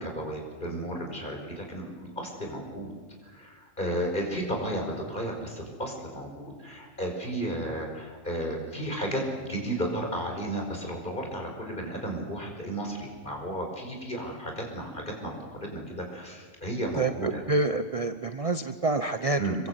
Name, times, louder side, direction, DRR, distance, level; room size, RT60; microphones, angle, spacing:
voice 1, 0.0-2.9 3.2-17.4 19.4-19.6, right 1 dB, 40° left, 1 dB, 5.5 m, -33 dB
voice 2, 17.0-19.4, right 2 dB, 30° right, 9 dB, 0.8 m, -27 dB
26.0 x 23.5 x 8.1 m, 1.4 s
omnidirectional pair, 1.3 m